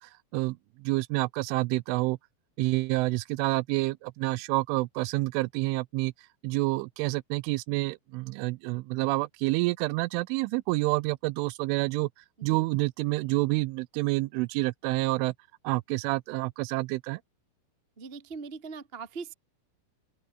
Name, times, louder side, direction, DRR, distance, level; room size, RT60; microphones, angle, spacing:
voice 1, 0.0-2.2 2.6-6.1 6.4-12.1 12.4-15.3 15.6-17.2, right 22 dB, 85° right, 3.0 m, -28 dB
voice 2, 18.0-19.3, right 5 dB, 50° right, 0.6 m, -41 dB
open air
omnidirectional pair, 5.8 m